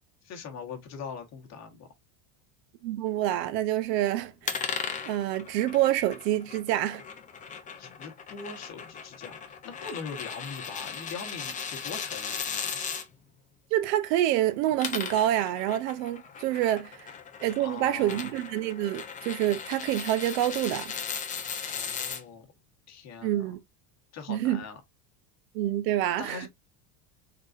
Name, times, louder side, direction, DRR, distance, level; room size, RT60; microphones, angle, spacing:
voice 1, 0.2-1.9 7.8-12.8 17.6-18.3 21.6-22.5 22.9-23.5 24.1-24.8 26.2-26.5, left 5 dB, 35° left, 1.2 m, -41 dB
voice 2, 2.8-4.7 5.1-7.0 13.7-17.1 17.4-20.9 23.2-23.6 24.3-24.6 25.5-26.5, right 13 dB, 90° right, 0.9 m, -27 dB
sound 1, 4.4-13.0 14.6-22.2, left 7 dB, 15° left, 0.5 m, -37 dB
3.9 x 3.8 x 2.5 m
cardioid pair, 155°, 48 cm